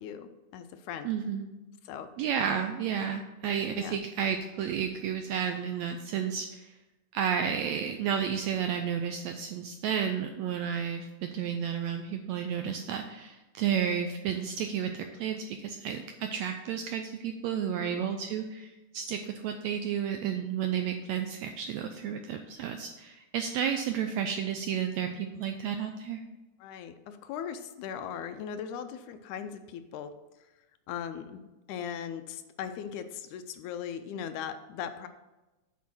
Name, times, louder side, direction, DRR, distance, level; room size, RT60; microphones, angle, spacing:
voice 1, 0.0-1.1 1.8-2.1 3.7-4.0 17.8-18.0 26.6-30.1 30.4-30.5 30.9-35.1, left 8 dB, 80° left, 9 dB, 2.0 m, -39 dB
voice 2, 1.0-1.5 2.2-6.7 7.1-26.2, right 8 dB, 85° right, 6 dB, 1.6 m, -32 dB
8.2 x 4.7 x 6.0 m, 1.1 s
omnidirectional pair, 3.6 m